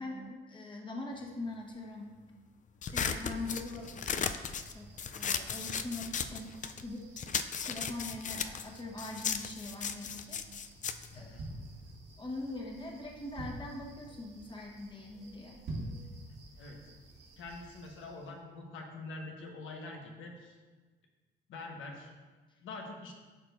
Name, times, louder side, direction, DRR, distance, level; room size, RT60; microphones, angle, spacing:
voice 1, 0.0-2.1 2.9-3.9 4.7-4.9 5.1-7.1 7.7-10.4 11.1-11.5 12.2-15.6, left 2 dB, 25° left, -1 dB, 1.2 m, -42 dB
sound 1, 2.8-6.9 7.2-12.0, left 7 dB, 40° left, 0.4 m, -36 dB
sound 2, 2.8-18.4, right 3 dB, 55° right, 1.9 m, -58 dB
voice 2, 11.1-11.4 16.6-16.8 17.4-20.6 21.5-22.1 22.6-23.1, left 3 dB, 80° left, 1 dB, 1.2 m, -45 dB
sound 3, 11.4-12.3 12.8-12.9 13.1-13.9 14.3-14.6 14.9-15.0 15.5-16.1 16.5-16.6, right 2 dB, 75° right, 2.1 m, -41 dB
12.0 x 4.5 x 2.6 m, 1.3 s
cardioid pair, 90°, 20 cm